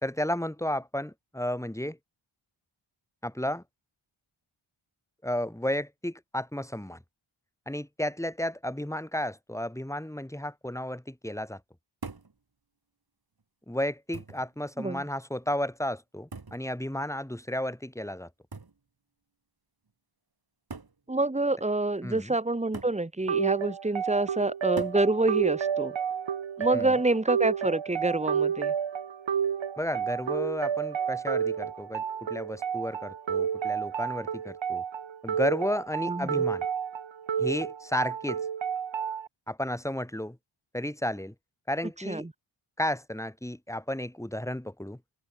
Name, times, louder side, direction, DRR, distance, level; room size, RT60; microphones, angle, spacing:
voice 1, 0.0-2.0 3.2-3.6 5.2-7.0 7.7-11.6 13.7-18.3 22.0-22.3 26.7-26.9 29.8-34.8 35.2-36.7 37.4-38.4 39.5-40.4 40.7-41.3 41.7-42.3 42.8-45.0, left 1 dB, 5° left, 2.3 m, -33 dB
sound 1, 12.0-12.4 13.4-13.5 14.1-14.5 16.3-16.7 18.5-18.8 19.9-20.0 20.7-21.0 22.7-23.0 24.8-25.1 26.6-27.0, right 4 dB, 45° right, 4.5 m, -42 dB
voice 2, 21.1-25.9 26.6-28.7 36.1-36.4 42.1-42.3, right 2 dB, 15° right, 1.4 m, -27 dB
sound 2, 23.3-39.3, right 7 dB, 65° right, 1.2 m, -30 dB
open air
wide cardioid pair, 80°, 49 cm